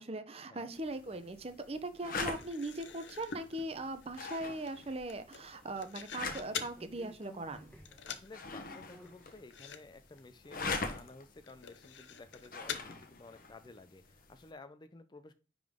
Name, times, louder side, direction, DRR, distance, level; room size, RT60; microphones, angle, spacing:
voice 1, 0.0-7.7, right 2 dB, 35° right, 10 dB, 0.7 m, -40 dB
sound 1, 0.7-14.5, left 4 dB, 50° left, 1.0 m, -44 dB
sound 2, 2.2-6.8 7.2-7.6 7.8-8.3 8.6-8.7 9.0-9.1 9.5-9.8 10.1-10.2 10.7-10.8 11.5-12.9, left 7 dB, 80° left, 0.7 m, -45 dB
sound 3, 6.2-9.3 9.8-9.9, equal, 5° left, 1.2 m, -56 dB
voice 2, 8.1-15.3, left 3 dB, 25° left, 11 dB, 0.4 m, -54 dB
9.9 x 3.8 x 3.6 m, 0.35 s
head